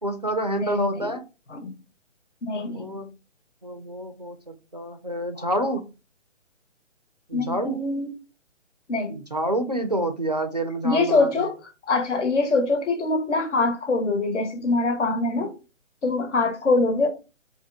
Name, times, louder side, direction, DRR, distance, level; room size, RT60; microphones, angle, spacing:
voice 1, 0.0-1.2 2.7-3.1 3.6-5.9 7.3-7.8 9.1-11.5, right 1 dB, 35° right, 0.4 m, -28 dB
voice 2, 0.6-1.1 1.5-1.7 2.4-2.9 5.4-5.5 7.3-8.1 8.9-9.2 10.8-11.6 11.9-15.5 16.0-17.1, left 3 dB, 70° left, 1.3 m, -24 dB
4.1 x 3.0 x 3.4 m
hypercardioid pair, 170°, 37 cm